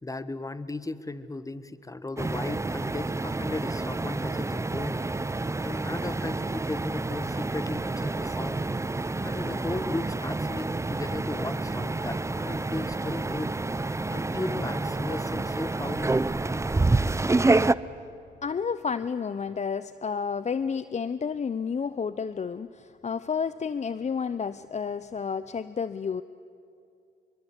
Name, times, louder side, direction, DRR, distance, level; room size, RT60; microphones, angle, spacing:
voice 1, 0.0-5.0 5.6-8.7 9.2-13.6 14.1-16.2, left 2 dB, 20° left, 13 dB, 1.4 m, -36 dB
sound 1, 2.2-17.7, right 2 dB, 15° right, 0.7 m, -28 dB
voice 2, 18.4-26.2, left 6 dB, 40° left, 14 dB, 0.7 m, -31 dB
26.0 x 22.5 x 8.2 m, 2.5 s
supercardioid pair, 60°, 18 cm